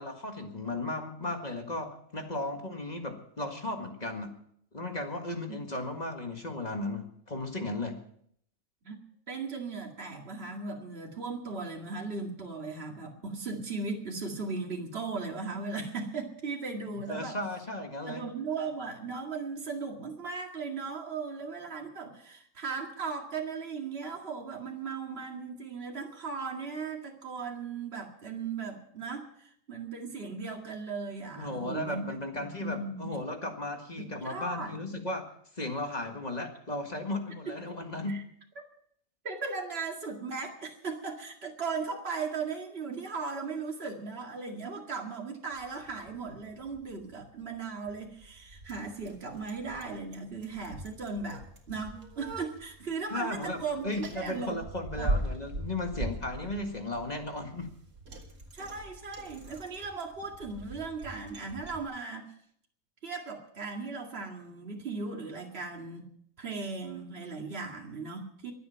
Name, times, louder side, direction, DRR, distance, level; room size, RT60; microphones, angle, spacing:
voice 1, 0.0-4.3 4.7-8.0 17.1-18.3 31.4-35.3 35.5-38.2 53.1-57.7, left 2 dB, 30° left, 4 dB, 1.9 m, -35 dB
voice 2, 9.3-17.4 18.1-33.1 34.0-34.8 37.5-37.6 38.1-38.2 39.2-54.6 55.0-55.1 58.5-62.3 63.0-66.1 66.4-68.5, right 4 dB, 45° right, 1 dB, 2.3 m, -37 dB
Bicycle, 45.5-61.8, right 1 dB, 85° right, 2.5 m, -41 dB
23.5 x 8.6 x 5.8 m, 0.67 s
omnidirectional pair, 1.5 m